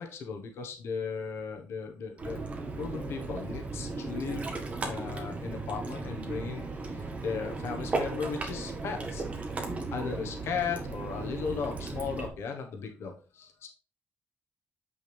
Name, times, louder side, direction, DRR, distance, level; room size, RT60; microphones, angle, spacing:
voice 1, 0.0-2.4 2.8-9.3 9.9-13.7, left 5 dB, 70° left, 4 dB, 1.3 m, -36 dB
Ocean, 2.2-12.3, right 3 dB, 30° right, 1.8 m, -36 dB
8.0 x 6.1 x 3.5 m, 0.38 s
wide cardioid pair, 175°, 4 cm